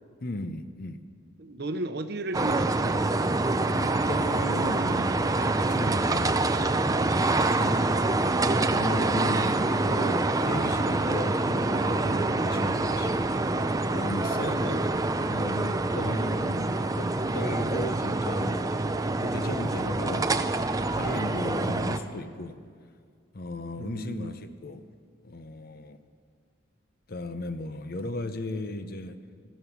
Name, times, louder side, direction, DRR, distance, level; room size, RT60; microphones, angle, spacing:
voice 1, 0.2-1.0 3.7-6.3 7.4-7.8 8.6-13.3 13.6-14.9 15.3-18.7 19.2-20.3 20.9-22.6 23.3-24.8 25.2-26.0 27.1-29.2, left 2 dB, 50° left, 10 dB, 0.7 m, -36 dB
voice 2, 1.4-3.0 14.3-14.9 16.0-16.2 23.8-24.3, right 1 dB, 55° right, 9 dB, 0.8 m, -35 dB
sound 1, 2.3-22.0, right 2 dB, 15° right, 0.5 m, -26 dB
14.5 x 13.0 x 7.0 m, 2.1 s
head